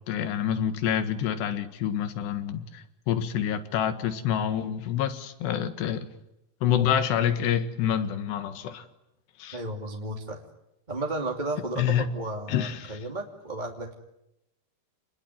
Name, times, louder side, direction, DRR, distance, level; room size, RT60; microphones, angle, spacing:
voice 1, 0.1-6.1 6.6-8.9 9.4-9.6 11.8-12.1 12.5-13.0, left 9 dB, 85° left, 10 dB, 3.8 m, -27 dB
voice 2, 9.5-10.4 10.9-13.9, right 2 dB, 15° right, 1 dB, 2.0 m, -33 dB
29.5 x 21.0 x 9.5 m, 0.85 s
omnidirectional pair, 4.7 m